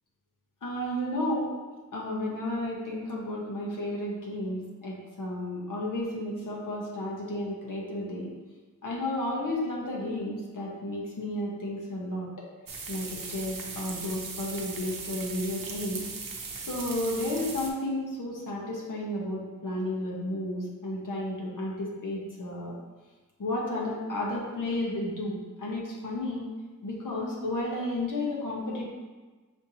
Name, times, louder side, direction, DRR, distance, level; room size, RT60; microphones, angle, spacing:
voice 1, 0.6-1.6 1.9-8.3 8.8-12.4 12.9-16.0 16.6-22.7 23.4-26.5 26.8-28.9, left 1 dB, 75° left, -3 dB, 1.1 m, -32 dB
sound 1, 12.7-17.7, right 4 dB, 85° right, 0.7 m, -38 dB
6.5 x 2.6 x 2.8 m, 1.3 s
wide cardioid pair, 80°, 32 cm